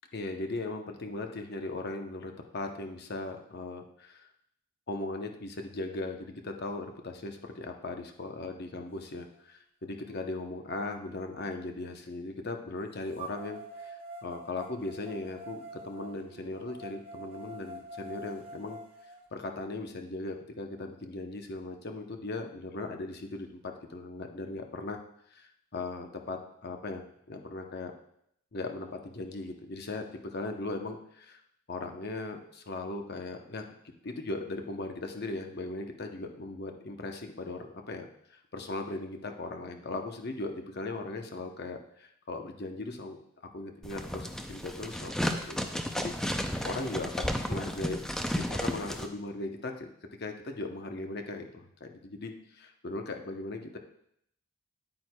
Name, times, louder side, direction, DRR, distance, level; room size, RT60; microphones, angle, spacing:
voice 1, 0.1-4.3 4.9-18.8 19.3-25.0 25.3-27.9 28.5-31.4 31.7-43.2 43.5-48.0 48.3-49.9 50.2-53.8, left 2 dB, 50° left, 4 dB, 0.8 m, -38 dB
sound 1, 9.4-9.5 10.0-11.9 13.2-19.2, right 2 dB, 25° right, 0.8 m, -46 dB
sound 2, 43.8-49.1, equal, 5° left, 0.4 m, -33 dB
9.6 x 8.8 x 2.2 m, 0.72 s
head